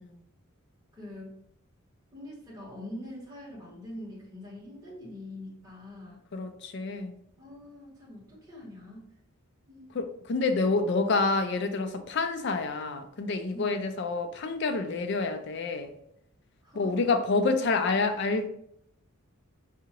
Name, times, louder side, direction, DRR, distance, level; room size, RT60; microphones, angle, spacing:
voice 1, 0.9-1.4 2.1-6.2 7.4-9.1 9.7-10.0 13.5-13.8 16.6-17.1, left 1 dB, 15° right, 1.5 m, -44 dB
voice 2, 6.3-7.2 9.9-15.9 16.7-18.5, left 3 dB, 50° left, 0.4 m, -28 dB
4.8 x 2.8 x 2.9 m
head